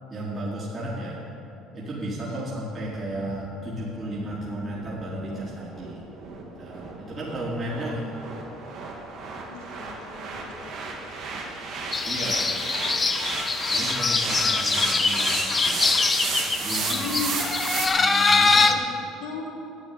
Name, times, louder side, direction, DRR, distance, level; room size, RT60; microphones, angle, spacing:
voice 1, 0.1-1.2 1.7-6.0 6.6-8.1 12.0-12.5 13.7-15.9 16.6-17.1 18.0-18.8, right 1 dB, 35° right, -7 dB, 3.5 m, -34 dB
Sweep (Side Chained), 3.2-17.9, right 4 dB, 65° right, 2.8 m, -33 dB
voice 2, 9.5-11.0 16.9-17.4 18.5-18.8 19.2-19.5, left 5 dB, 85° left, -2 dB, 3.1 m, -36 dB
sound 1, 11.9-18.7, left 4 dB, 25° left, 0.9 m, -23 dB
12.0 x 8.5 x 9.4 m, 2.9 s
supercardioid pair, 105°, 0 cm